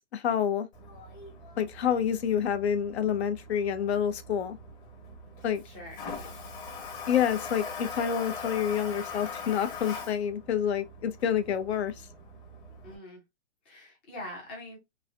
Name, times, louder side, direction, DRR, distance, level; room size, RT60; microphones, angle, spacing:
voice 1, 0.1-0.7 1.6-4.6 5.4-5.6 7.1-11.9, left 8 dB, 65° left, 0.6 m, -28 dB
Toilet flush, 0.7-13.0, left 4 dB, 40° left, 1.2 m, -42 dB
voice 2, 5.6-6.0 12.8-13.2 13.7-14.8, left 1 dB, 10° left, 0.4 m, -43 dB
3.1 x 2.4 x 2.4 m
hypercardioid pair, 155°, 35 cm